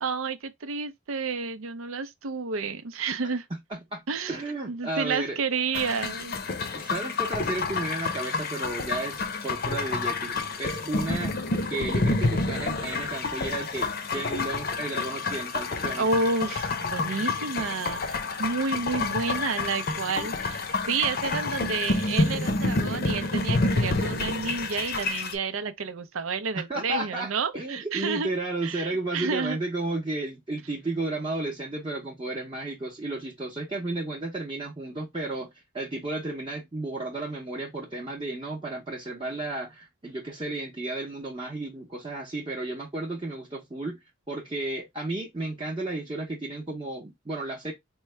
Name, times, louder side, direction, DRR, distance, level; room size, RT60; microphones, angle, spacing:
voice 1, 0.0-3.5 4.1-4.4 4.7-6.4 16.0-28.3 28.6-29.6, right 4 dB, 90° right, 0.6 m, -30 dB
voice 2, 3.7-4.0 4.3-5.4 6.7-11.4 11.7-16.1 26.7-35.5 35.7-47.7, right 2 dB, 25° right, 0.7 m, -33 dB
sound 1, 5.7-25.3, left 3 dB, 50° left, 0.6 m, -29 dB
4.6 x 2.1 x 3.2 m
head